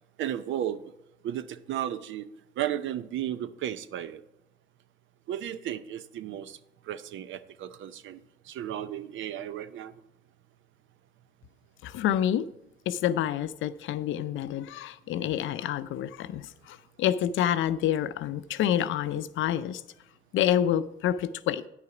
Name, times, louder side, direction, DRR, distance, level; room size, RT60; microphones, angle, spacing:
voice 1, 0.2-0.8 1.2-2.3 2.6-4.2 5.3-6.6 6.9-8.2 8.5-9.9, right 11 dB, 75° right, 0.6 m, -34 dB
voice 2, 11.8-12.5 12.9-19.8 20.3-21.6, left 10 dB, 80° left, 0.5 m, -28 dB
9.4 x 6.7 x 5.0 m
cardioid pair, 90°, 20 cm